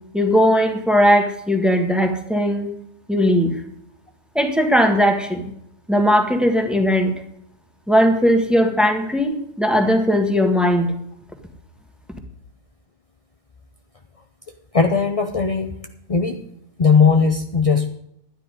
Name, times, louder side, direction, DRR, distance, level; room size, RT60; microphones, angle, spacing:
voice 1, 0.1-2.7 3.1-3.5 4.3-5.5 5.9-7.1 7.9-10.9, equal, ahead, 4 dB, 1.3 m, -18 dB
voice 2, 14.7-15.8 16.1-16.4 16.8-17.9, left 5 dB, 45° left, 5 dB, 0.4 m, -17 dB
12.0 x 9.9 x 5.2 m, 0.75 s
omnidirectional pair, 1.7 m